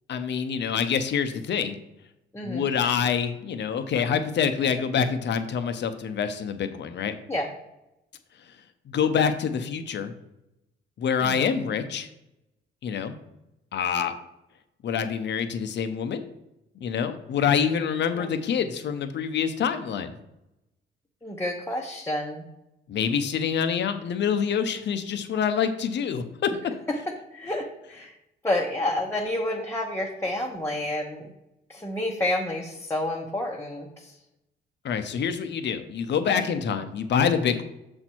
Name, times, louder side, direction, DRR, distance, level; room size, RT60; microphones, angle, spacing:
voice 1, 0.1-1.8 2.4-7.2 8.9-10.1 11.0-12.1 12.8-13.1 13.7-14.1 14.8-16.3 16.8-20.1 22.9-26.5 34.8-37.6, left 7 dB, 60° left, 9 dB, 0.8 m, -26 dB
voice 2, 2.3-2.7 7.3-7.5 11.2-11.5 18.1-18.3 21.2-22.5 27.3-28.1 28.4-31.3 31.7-34.2 36.5-36.6, left 1 dB, 10° left, -2 dB, 1.0 m, -29 dB
6.6 x 4.4 x 4.5 m, 0.89 s
cardioid pair, 90°, 20 cm